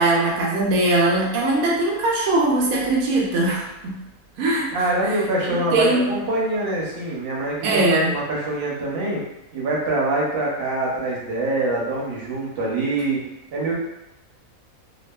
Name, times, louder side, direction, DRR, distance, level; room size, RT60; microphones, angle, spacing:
voice 1, 0.0-4.0 4.4-5.2 5.7-6.1 7.6-8.1, right 2 dB, 85° right, -3 dB, 1.1 m, -21 dB
voice 2, 4.7-9.2 9.5-13.2 13.5-13.7, right 2 dB, 55° right, -4 dB, 0.8 m, -24 dB
2.7 x 2.3 x 2.2 m, 0.93 s
omnidirectional pair, 1.5 m